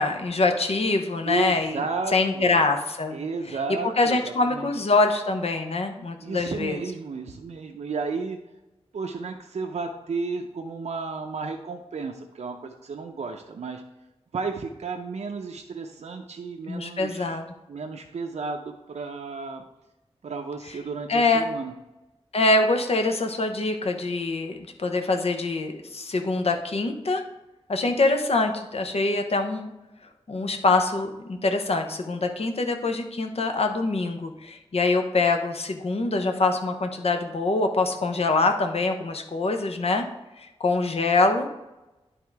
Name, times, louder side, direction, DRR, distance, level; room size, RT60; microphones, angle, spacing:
voice 1, 0.0-1.8 2.1-3.2 3.5-3.6 4.0-6.8 16.7-17.5 21.1-21.4 22.3-27.2 27.7-29.7 30.3-40.1 40.4-41.5, left 3 dB, 65° left, 5 dB, 0.9 m, -24 dB
voice 2, 1.2-2.7 3.1-4.7 6.2-8.4 8.9-13.8 14.3-17.4 17.7-19.6 20.2-21.7, right 4 dB, 80° right, 3 dB, 0.6 m, -33 dB
10.5 x 3.7 x 4.7 m, 0.99 s
wide cardioid pair, 80°, 11 cm